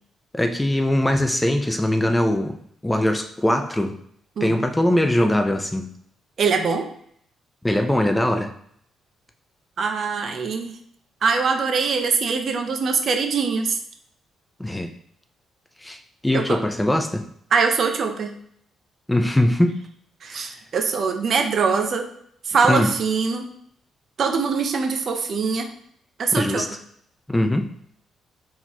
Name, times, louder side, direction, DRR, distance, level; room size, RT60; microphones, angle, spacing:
voice 1, 0.3-2.6 2.8-4.0 4.4-5.9 7.6-8.5 14.6-14.9 15.8-17.2 19.1-19.8 20.3-20.5 22.7-22.9 26.3-26.7 27.3-27.7, left 1 dB, 10° left, 6 dB, 0.5 m, -21 dB
voice 2, 6.4-6.9 9.8-10.7 11.2-13.8 16.3-16.6 17.5-18.4 20.2-22.1 22.5-23.5 24.2-25.7 26.2-26.8, right 5 dB, 55° right, 5 dB, 0.7 m, -22 dB
4.4 x 3.8 x 2.9 m, 0.66 s
cardioid pair, 90°, 0 cm